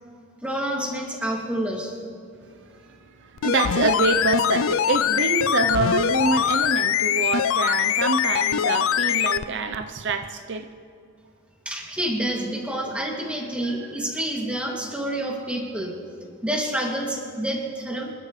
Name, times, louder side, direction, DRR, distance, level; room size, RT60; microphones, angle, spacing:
voice 1, 0.4-1.9 11.7-15.9 16.4-18.1, right 1 dB, 5° right, -2 dB, 2.4 m, -28 dB
voice 2, 2.9-10.7 13.6-13.9, right 3 dB, 55° right, 7 dB, 0.7 m, -26 dB
sound 1, 3.4-9.5 9.7-9.8, left 9 dB, 65° left, 0.4 m, -23 dB
27.5 x 12.0 x 3.2 m, 2.5 s
head